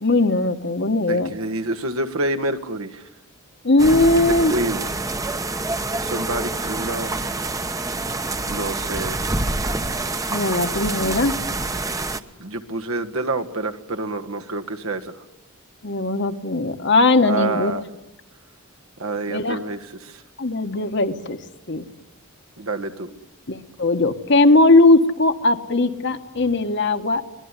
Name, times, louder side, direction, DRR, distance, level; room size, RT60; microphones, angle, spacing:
voice 1, 0.0-1.3 3.6-4.5 10.3-11.3 15.8-17.7 19.3-19.6 20.4-21.4 21.7-21.8 23.5-27.2, left 2 dB, 55° left, 8 dB, 1.5 m, -19 dB
voice 2, 0.9-3.0 4.2-4.8 6.0-7.1 8.5-9.3 12.4-15.1 17.2-17.8 19.0-20.2 22.6-23.1, right 2 dB, 75° right, 6 dB, 1.7 m, -27 dB
sound 1, 3.8-12.2, right 2 dB, 15° right, 0.9 m, -26 dB
23.5 x 19.0 x 9.9 m, 0.87 s
head